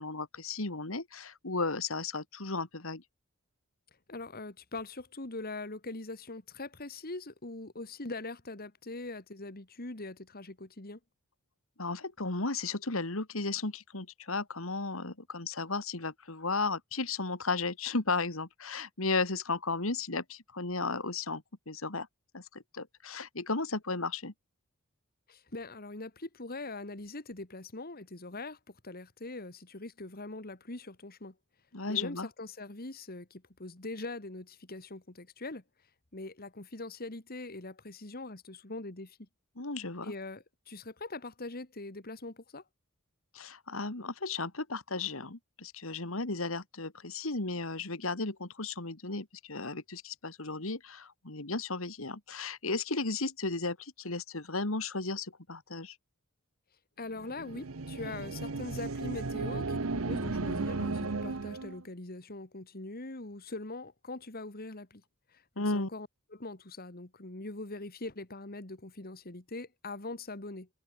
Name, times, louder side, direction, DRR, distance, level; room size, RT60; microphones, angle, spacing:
voice 1, 0.0-3.0 11.8-22.1 22.3-24.3 31.7-32.3 39.6-40.1 43.3-56.0 65.6-65.9, left 3 dB, 70° left, 2.5 m, -34 dB
voice 2, 4.1-11.0 25.3-31.3 31.9-35.6 36.1-39.2 40.0-42.6 57.0-65.0 65.3-70.7, left 2 dB, 45° left, 2.3 m, -42 dB
sound 1, 57.2-61.8, right 3 dB, 75° right, 1.0 m, -35 dB
head